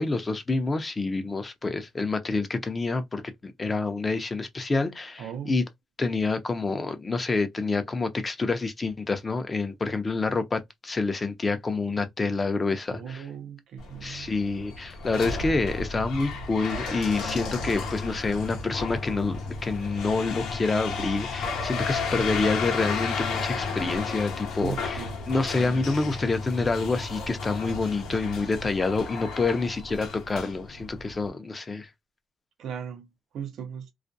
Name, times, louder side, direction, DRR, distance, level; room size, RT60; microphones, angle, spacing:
voice 1, 0.0-5.6 6.0-13.2 14.0-31.9, left 3 dB, 25° left, 0.6 m, -27 dB
voice 2, 5.2-5.6 12.9-14.3 24.6-25.2 32.6-33.9, right 8 dB, 75° right, 0.5 m, -37 dB
sound 1, 13.8-31.3, left 4 dB, 85° left, 0.7 m, -33 dB
2.4 x 2.1 x 2.6 m
cardioid pair, 90°, 0 cm